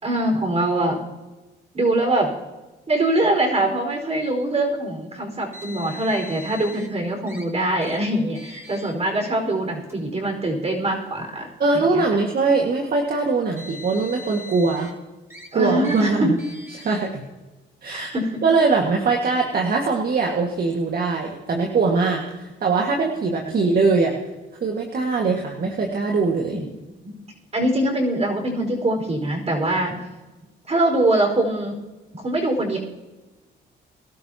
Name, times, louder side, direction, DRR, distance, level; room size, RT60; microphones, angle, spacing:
voice 1, 0.0-1.0 1.7-2.3 2.9-11.5 11.7-12.0 15.5-16.3 17.9-18.4 23.4-23.5 26.5-26.7 27.0-27.1 27.5-30.0 30.7-31.8 32.1-32.8, right 1 dB, 30° right, 2 dB, 4.8 m, -23 dB
Car, 5.5-6.9 7.3-7.4 7.8-8.0 8.4-8.9 9.8-9.9 10.9-11.0 13.3-14.9 15.3-15.5 15.8-16.0 16.4-17.0, left 1 dB, 15° right, 4.1 m, -41 dB
voice 2, 11.6-14.9 15.5-16.4 16.7-17.2 17.8-18.1 18.4-24.2 24.6-26.6, right 4 dB, 50° right, 1 dB, 1.9 m, -21 dB
23.5 x 12.5 x 2.9 m, 1.1 s
cardioid pair, 90°, 20 cm